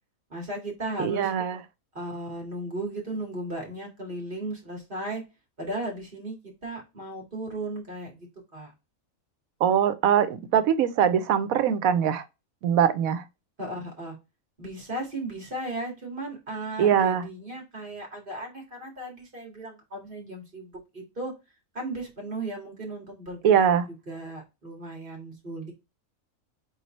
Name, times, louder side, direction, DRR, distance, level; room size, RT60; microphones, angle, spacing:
voice 1, 0.3-1.3 1.9-5.2 5.6-8.3 8.5-8.7 13.6-14.1 14.6-21.3 21.7-23.7 24.1-25.7, right 1 dB, 40° right, 2.1 m, -36 dB
voice 2, 1.0-1.6 9.6-12.2 12.6-13.2 16.8-17.2 23.4-23.9, right 8 dB, 90° right, 1.1 m, -22 dB
4.1 x 4.0 x 3.1 m
omnidirectional pair, 1.4 m